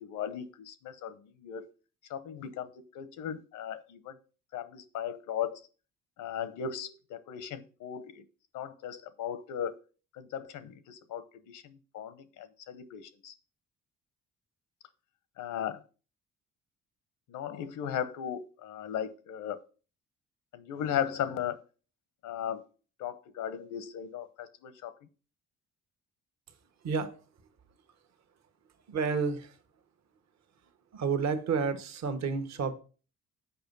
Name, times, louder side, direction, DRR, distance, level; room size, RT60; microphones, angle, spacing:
voice 1, 0.0-1.7 2.1-4.2 4.5-5.6 6.2-8.2 8.5-9.8 10.1-13.3 15.4-15.8 17.3-19.6 20.5-21.6 22.2-22.7 23.0-24.9, left 9 dB, 85° left, 0.9 m, -37 dB
voice 2, 26.8-27.2 28.9-29.6 30.9-32.7, right 5 dB, 60° right, 1.2 m, -30 dB
7.0 x 5.1 x 5.3 m
cardioid pair, 90°, 30 cm